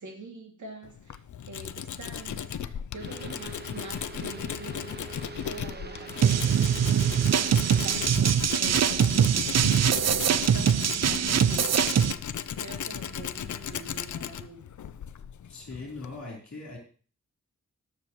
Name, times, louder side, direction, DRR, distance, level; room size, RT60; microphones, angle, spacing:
voice 1, 0.0-14.7, right 3 dB, 85° right, 1 dB, 2.6 m, -45 dB
Tools, 0.8-16.2, left 9 dB, 80° left, 0.6 m, -36 dB
sound 1, 3.0-8.1, right 3 dB, 35° right, 1.1 m, -43 dB
sound 2, 6.2-12.1, right 8 dB, 60° right, 0.5 m, -23 dB
voice 2, 15.5-16.8, left 3 dB, 65° left, -1 dB, 3.9 m, -40 dB
19.0 x 6.8 x 3.1 m, 0.40 s
wide cardioid pair, 110°, 29 cm